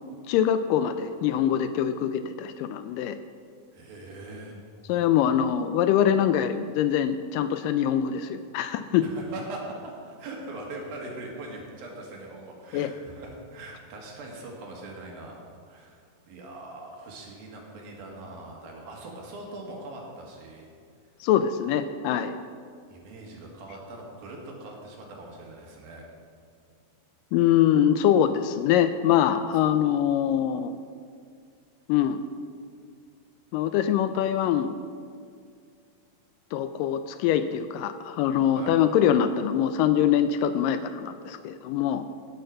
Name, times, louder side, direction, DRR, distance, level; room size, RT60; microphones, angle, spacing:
voice 1, 0.3-3.2 4.9-9.0 12.7-12.9 21.2-22.4 27.3-30.7 31.9-32.2 33.5-34.7 36.5-42.0, left 10 dB, 80° left, 10 dB, 2.0 m, -24 dB
voice 2, 3.7-4.6 9.0-16.0 16.3-20.7 22.9-26.1 38.6-38.8, right 2 dB, 85° right, -1 dB, 3.7 m, -41 dB
15.5 x 6.6 x 6.5 m, 2.2 s
omnidirectional pair, 4.1 m